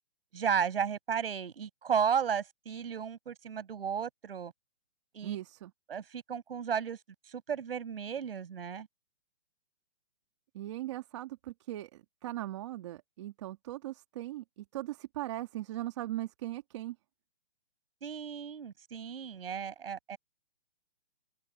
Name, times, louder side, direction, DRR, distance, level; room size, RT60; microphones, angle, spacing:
voice 1, 0.3-4.5 5.1-5.4 5.9-7.0 7.3-8.9 18.0-20.2, right 7 dB, 60° right, 7.6 m, -34 dB
voice 2, 5.2-5.7 10.5-17.0, right 15 dB, 25° right, 2.5 m, -39 dB
hypercardioid pair, 175°, 34 cm